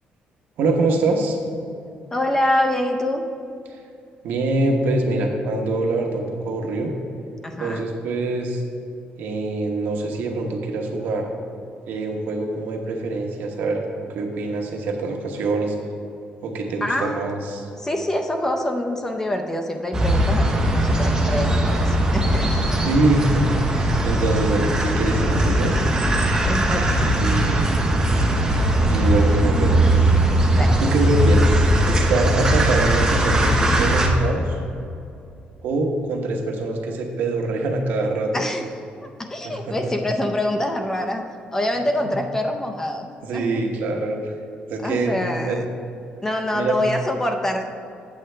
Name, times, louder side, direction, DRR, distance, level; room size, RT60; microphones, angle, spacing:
voice 1, 0.6-1.4 3.7-3.8 4.2-6.9 7.6-8.6 9.2-11.3 11.9-13.8 14.1-15.7 16.4-17.7 22.8-25.7 27.0-27.8 28.9-30.1 30.8-34.6 35.6-38.3 39.4-39.7 43.2-44.3 44.7-45.7 46.5-46.8, right 2 dB, 75° right, 2 dB, 1.0 m, -24 dB
voice 2, 2.1-3.2 7.4-7.9 16.8-17.4 17.8-22.8 26.4-27.0 30.6-30.8 38.3-38.7 39.0-43.1 43.3-43.7 44.8-45.6 46.2-47.7, left 1 dB, 15° left, 4 dB, 0.5 m, -25 dB
sound 1, 19.9-34.1, right 1 dB, 20° right, 0.9 m, -19 dB
8.4 x 7.7 x 3.3 m, 2.6 s
cardioid pair, 155°, 3 cm